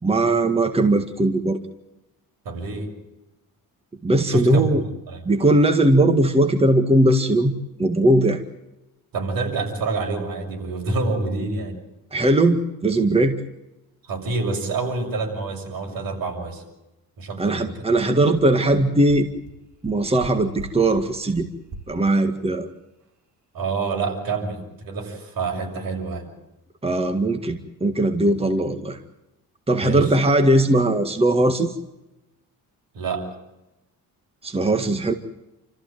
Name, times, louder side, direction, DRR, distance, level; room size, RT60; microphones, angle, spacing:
voice 1, 0.0-1.6 4.0-4.8 5.3-7.5 7.8-8.4 12.1-13.4 17.4-19.3 19.8-21.5 21.9-22.7 26.8-29.0 29.7-31.7 34.4-35.1, right 1 dB, 15° right, 7 dB, 1.9 m, -19 dB
voice 2, 2.4-2.9 4.3-5.2 9.1-11.7 14.0-16.6 17.2-17.9 23.5-26.3 29.8-30.1 32.9-33.3, right 3 dB, 75° right, 3 dB, 6.8 m, -27 dB
sound 1, 18.0-18.1 18.3-18.4 18.7-18.8 19.1-19.2 19.5-19.6 19.8-20.3 20.6-20.7 20.9-21.0 21.3-21.4 21.7-21.8, right 3 dB, 55° right, 3.8 m, -38 dB
29.0 x 14.5 x 9.2 m, 0.93 s
cardioid pair, 110°, 35 cm